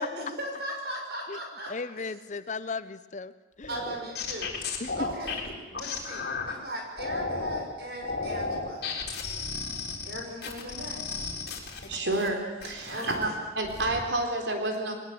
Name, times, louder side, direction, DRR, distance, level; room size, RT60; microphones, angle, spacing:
voice 1, 0.0-1.7 3.7-5.4 5.7-8.9 10.0-11.2 12.8-13.4, equal, 65° right, 1 dB, 6.5 m, -38 dB
voice 2, 1.7-3.8 4.8-5.1 5.5-5.7, left 4 dB, 45° left, 14 dB, 0.7 m, -36 dB
sound 1, 3.6-6.5 7.0-7.6 8.0-12.3 12.6-13.3 13.6-14.0, left 4 dB, 60° left, 4.1 m, -34 dB
voice 3, 11.9-14.9, right 2 dB, 90° right, 3 dB, 3.9 m, -30 dB
21.5 x 20.0 x 7.9 m, 1.3 s
head